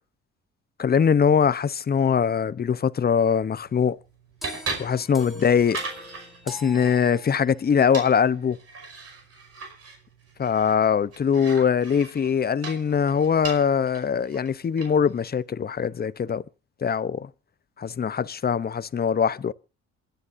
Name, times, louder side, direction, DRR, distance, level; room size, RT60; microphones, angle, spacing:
voice 1, 0.8-4.0 4.8-5.8 6.5-8.6 10.4-16.4 16.8-17.3 17.8-19.5, left 7 dB, 30° left, 0.7 m, -22 dB
sound 1, 3.3-15.2, right 4 dB, 55° right, 5.3 m, -40 dB
sound 2, 4.4-7.7, equal, ahead, 3.2 m, -42 dB
27.5 x 10.5 x 2.6 m
cardioid pair, 90°, 30 cm